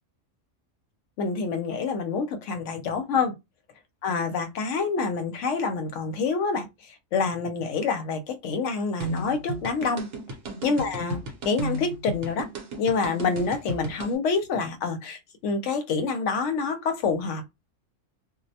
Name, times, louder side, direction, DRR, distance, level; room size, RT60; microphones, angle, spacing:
voice 1, 1.2-3.3 4.0-10.1 10.6-12.5 12.8-17.5, left 4 dB, 70° left, 0.9 m, -27 dB
sound 1, 9.0-14.2, right 1 dB, 55° right, 0.9 m, -34 dB
2.3 x 2.0 x 2.7 m
omnidirectional pair, 1.3 m